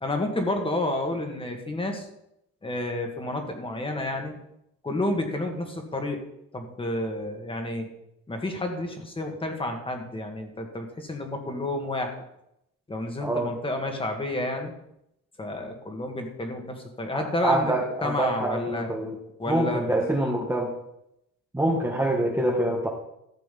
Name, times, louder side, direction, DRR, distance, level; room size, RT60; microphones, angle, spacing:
voice 1, 0.0-2.1 2.6-4.4 4.8-6.2 6.5-7.9 8.3-12.2 12.9-14.7 15.4-18.9 19.4-20.5, left 1 dB, 15° left, 4 dB, 2.0 m, -30 dB
voice 2, 13.2-13.5 17.1-19.2 19.5-20.7 21.5-22.9, right 1 dB, 10° right, -1 dB, 1.4 m, -26 dB
13.5 x 6.8 x 5.4 m, 0.81 s
cardioid pair, 130°, 31 cm